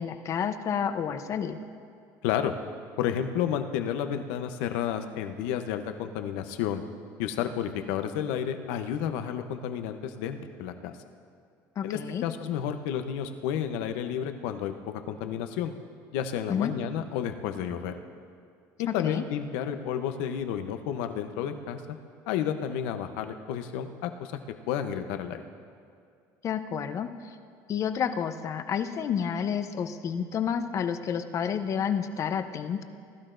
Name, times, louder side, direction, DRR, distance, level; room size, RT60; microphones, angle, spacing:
voice 1, 0.0-1.6 11.8-12.2 16.5-16.7 18.9-19.2 26.4-27.3 27.7-32.8, left 7 dB, 45° left, 9 dB, 0.8 m, -30 dB
voice 2, 2.2-2.5 3.0-6.8 7.2-10.9 11.8-15.7 16.1-17.9 18.8-21.8 22.3-24.3 24.7-25.4, left 9 dB, 85° left, 8 dB, 0.8 m, -31 dB
20.0 x 12.0 x 2.6 m, 2.4 s
cardioid pair, 115°, 8 cm